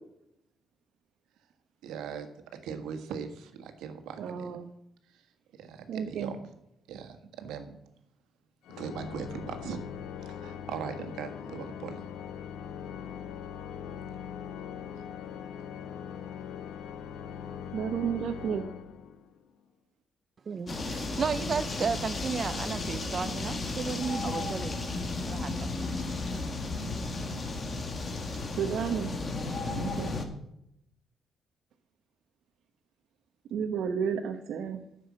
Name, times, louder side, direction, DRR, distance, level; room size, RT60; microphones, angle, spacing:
voice 1, 1.8-4.6 5.5-6.5 6.9-7.8 8.7-9.8 10.2-12.0 15.0-15.1, right 7 dB, 90° right, 1.6 m, -40 dB
voice 2, 4.2-4.6 5.9-6.3 17.7-18.6 28.5-29.1 29.7-30.1 33.5-34.8, right 7 dB, 75° right, 0.9 m, -32 dB
Organ, 8.6-19.4, left 8 dB, 80° left, 0.9 m, -41 dB
voice 3, 20.5-24.8 25.3-25.9, right 5 dB, 45° right, 0.5 m, -33 dB
sound 1, 20.7-30.2, left 3 dB, 35° left, 1.9 m, -34 dB
10.0 x 7.0 x 8.6 m
cardioid pair, 90°, 0 cm